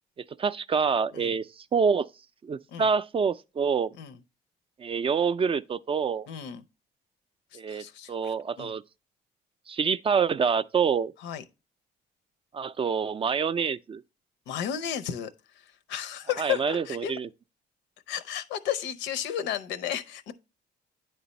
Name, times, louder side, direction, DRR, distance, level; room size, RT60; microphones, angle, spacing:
voice 1, 0.4-1.5 1.7-2.1 2.4-3.9 4.8-6.3 7.5-8.8 9.7-11.1 12.5-14.0 16.4-17.3, right 6 dB, 30° right, 0.3 m, -26 dB
voice 2, 6.3-6.6 7.5-8.7 11.2-11.4 14.5-17.1 18.1-20.3, left 10 dB, 85° left, 0.6 m, -33 dB
9.4 x 3.3 x 4.0 m
cardioid pair, 85°, 18 cm